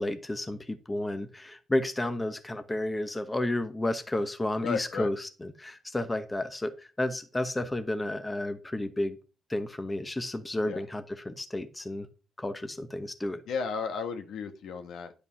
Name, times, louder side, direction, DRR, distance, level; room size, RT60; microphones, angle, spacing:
voice 1, 0.0-5.2 5.4-9.2 9.5-12.1 12.4-13.4, left 1 dB, 15° left, 9 dB, 1.0 m, -32 dB
voice 2, 4.6-5.1 10.6-10.8 13.5-15.1, left 5 dB, 75° left, 7 dB, 1.3 m, -34 dB
9.8 x 5.1 x 5.6 m, 0.33 s
cardioid pair, 90°, 0 cm